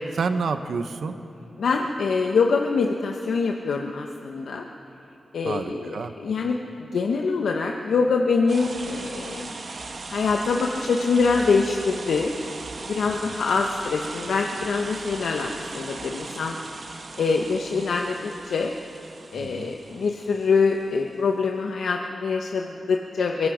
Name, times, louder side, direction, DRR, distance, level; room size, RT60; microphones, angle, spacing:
voice 1, 0.2-1.2 5.5-6.1 13.1-13.2 19.3-19.7, right 5 dB, 80° right, 8 dB, 1.0 m, -29 dB
voice 2, 1.6-4.6 5.3-9.5 10.1-12.3 12.9-16.6 17.2-18.7 19.3-23.5, left 4 dB, 90° left, 2 dB, 1.0 m, -24 dB
sound 1, 8.5-21.0, right 3 dB, 60° right, 1.7 m, -38 dB
23.5 x 22.5 x 5.1 m, 2.8 s
wide cardioid pair, 95°, 0 cm